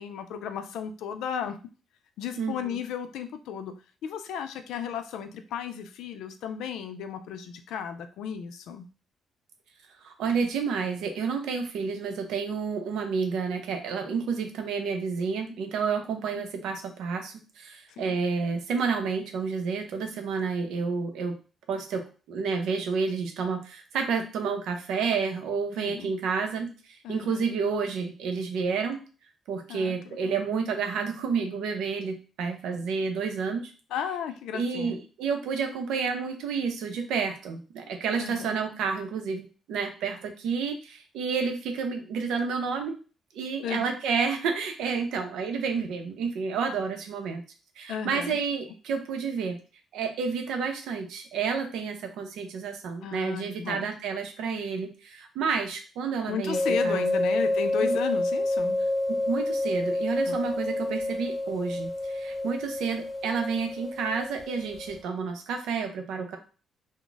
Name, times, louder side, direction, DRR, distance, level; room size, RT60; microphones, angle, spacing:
voice 1, 0.0-1.6 2.2-3.8 4.0-8.9 16.3-16.4 18.0-18.2 25.8-26.1 27.0-27.5 29.7-30.3 33.9-35.0 38.2-38.5 43.6-43.9 47.9-48.4 53.0-53.9 56.3-58.8 60.2-60.4, left 8 dB, 85° left, 8 dB, 0.4 m, -34 dB
voice 2, 2.4-2.8 10.0-21.3 21.7-29.0 29.5-33.7 34.5-43.0 43.3-47.4 47.8-49.6 49.9-57.3 57.8-58.0 59.1-66.4, right 5 dB, 85° right, 5 dB, 0.6 m, -30 dB
sound 1, 56.5-65.0, left 1 dB, 25° left, 1.0 m, -29 dB
2.4 x 2.1 x 3.8 m, 0.36 s
cardioid pair, 90°, 0 cm